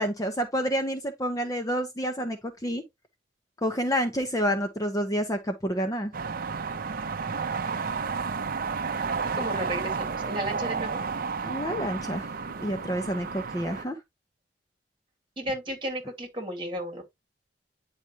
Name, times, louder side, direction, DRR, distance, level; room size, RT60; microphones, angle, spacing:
voice 1, 0.0-2.8 3.6-6.1 11.4-14.0, equal, 20° left, 0.9 m, -29 dB
sound 1, 6.1-13.9, right 5 dB, 50° right, 0.6 m, -32 dB
voice 2, 9.2-11.0 15.4-17.0, right 1 dB, 25° right, 2.5 m, -33 dB
9.7 x 4.9 x 2.9 m
head